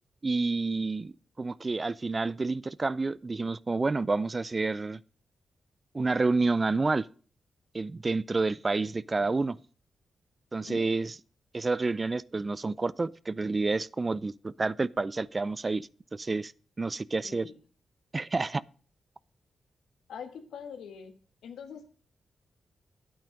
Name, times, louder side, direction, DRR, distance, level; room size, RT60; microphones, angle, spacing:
voice 1, 0.2-5.0 5.9-7.1 7.7-9.6 10.5-11.1 11.5-16.5 16.8-17.5 18.1-18.6, right 3 dB, 35° right, 0.4 m, -29 dB
voice 2, 17.2-17.6 20.1-21.2 21.4-21.9, left 7 dB, 85° left, 1.4 m, -43 dB
9.3 x 8.7 x 5.2 m
supercardioid pair, 45°, 0 cm